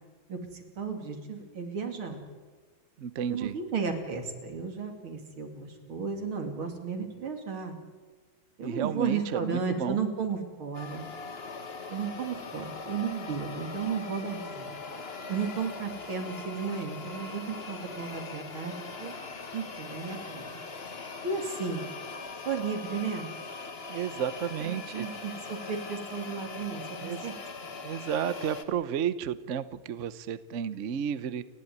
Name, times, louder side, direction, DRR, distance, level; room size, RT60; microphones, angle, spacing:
voice 1, 0.3-2.2 3.3-7.8 8.6-11.0 11.9-14.8 15.3-19.2 19.5-20.5 21.2-21.9 22.5-23.3 24.6-27.3, right 5 dB, 80° right, 5 dB, 3.5 m, -34 dB
voice 2, 3.0-3.6 8.6-10.0 23.9-25.1 27.0-27.3 27.8-31.4, right 8 dB, 55° right, 15 dB, 0.8 m, -32 dB
sound 1, 10.7-28.6, left 4 dB, 30° left, 1.5 m, -41 dB
29.5 x 12.0 x 9.5 m, 1.4 s
omnidirectional pair, 2.3 m